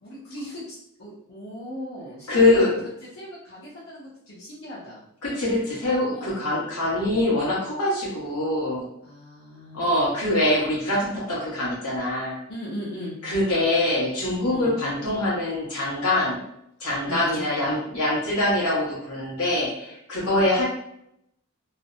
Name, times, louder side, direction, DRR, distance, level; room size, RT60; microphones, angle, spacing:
voice 1, 0.0-2.6 3.0-5.0 6.1-6.4 9.0-9.8 12.5-13.2 14.5-14.8 17.0-17.8 20.2-20.5, equal, 65° left, -9 dB, 0.8 m, -38 dB
voice 2, 2.3-2.7 5.2-8.8 9.7-12.4 13.2-16.4 16.8-20.6, left 1 dB, 90° left, -6 dB, 1.3 m, -24 dB
3.1 x 2.0 x 2.6 m, 0.76 s
head